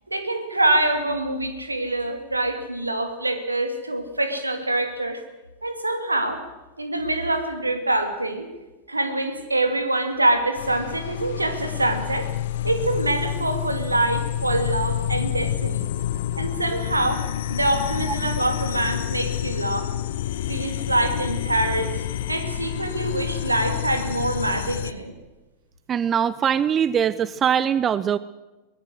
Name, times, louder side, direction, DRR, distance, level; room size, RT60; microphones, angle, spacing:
voice 1, 0.1-5.2 5.6-6.4 6.8-8.5 8.9-12.3 12.6-15.9 16.4-17.2 17.5-19.9 20.5-21.9 22.3-25.1, right 2 dB, 80° right, 7 dB, 2.6 m, -25 dB
sound 1, 10.6-24.9, left 11 dB, 55° left, 1.1 m, -28 dB
voice 2, 25.9-28.2, right 8 dB, 25° right, 18 dB, 0.6 m, -22 dB
24.0 x 19.0 x 6.4 m, 1.1 s
figure-of-eight pair, 90°, 0 cm